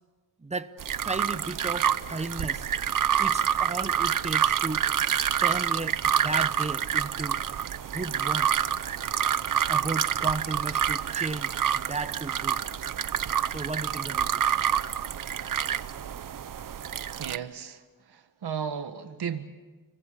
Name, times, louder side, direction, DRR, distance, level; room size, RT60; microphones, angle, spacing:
voice 1, 0.4-0.7 1.0-2.7 3.2-4.9 5.4-7.4 7.9-8.5 9.7-12.6 13.5-14.6, right 3 dB, 15° right, 0.9 m, -34 dB
sound 1, 0.8-17.4, right 9 dB, 55° right, 0.7 m, -27 dB
voice 2, 17.2-19.5, right 7 dB, 90° right, 1.7 m, -35 dB
29.5 x 23.5 x 6.8 m
wide cardioid pair, 155°, 38 cm